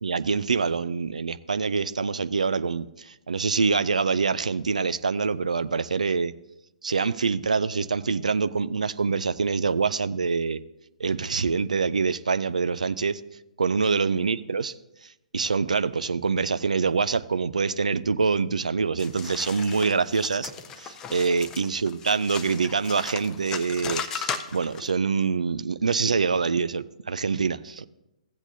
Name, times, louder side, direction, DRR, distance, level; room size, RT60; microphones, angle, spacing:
voice 1, 0.0-6.3 6.8-10.6 11.0-13.2 13.6-14.7 15.0-20.5 20.8-27.9, right 5 dB, 65° right, 14 dB, 0.4 m, -25 dB
sound 1, 19.0-24.9, left 7 dB, 15° left, 0.5 m, -36 dB
15.5 x 8.0 x 2.7 m, 0.92 s
figure-of-eight pair, 125°, 4 cm